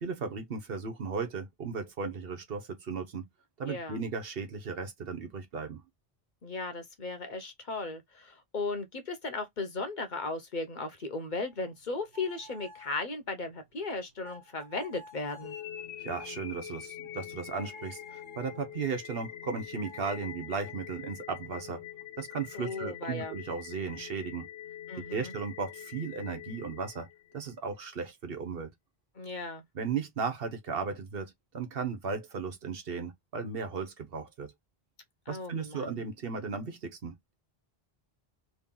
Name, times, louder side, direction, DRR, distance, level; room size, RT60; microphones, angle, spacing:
voice 1, 0.0-3.3 3.6-5.8 16.0-21.8 22.2-24.5 25.1-27.1 27.3-28.7 29.7-34.5 35.3-37.3, right 5 dB, 65° right, 1.1 m, -36 dB
voice 2, 3.7-4.0 6.4-15.6 22.5-23.3 24.9-25.3 29.2-29.6 35.3-36.0, left 3 dB, 50° left, 0.9 m, -36 dB
sound 1, 11.4-18.8 19.8-22.7, equal, 45° right, 1.1 m, -56 dB
sound 2, 15.4-27.5, left 11 dB, 75° left, 0.8 m, -45 dB
3.1 x 2.9 x 3.7 m
omnidirectional pair, 1.0 m